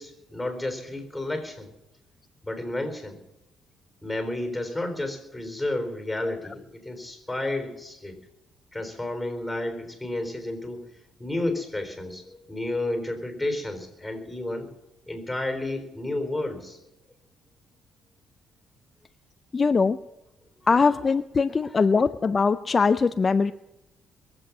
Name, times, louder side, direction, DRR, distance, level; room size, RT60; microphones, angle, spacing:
voice 1, 0.0-1.7 2.4-3.2 4.0-8.1 8.7-10.9 11.2-14.7 15.1-16.8, left 2 dB, 5° left, 5 dB, 4.2 m, -31 dB
voice 2, 19.5-20.0 20.7-23.5, left 4 dB, 35° left, 11 dB, 0.5 m, -21 dB
22.0 x 7.9 x 7.4 m, 0.94 s
cardioid pair, 90°, 0 cm